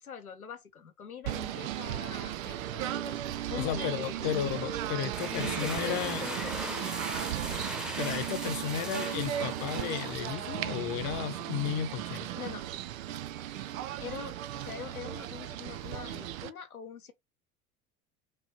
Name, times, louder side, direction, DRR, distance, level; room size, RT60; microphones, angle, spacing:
voice 1, 0.0-4.5 5.3-7.1 12.4-12.7 14.0-17.1, left 8 dB, 90° left, 1.0 m, -43 dB
Singing / Bird, 1.2-16.5, right 12 dB, 70° right, 0.7 m, -36 dB
voice 2, 3.6-6.2 8.0-12.3, left 10 dB, 55° left, 1.0 m, -34 dB
sound 1, 5.0-10.6, equal, ahead, 1.1 m, -39 dB
5.5 x 3.0 x 2.9 m
figure-of-eight pair, 70°, 42 cm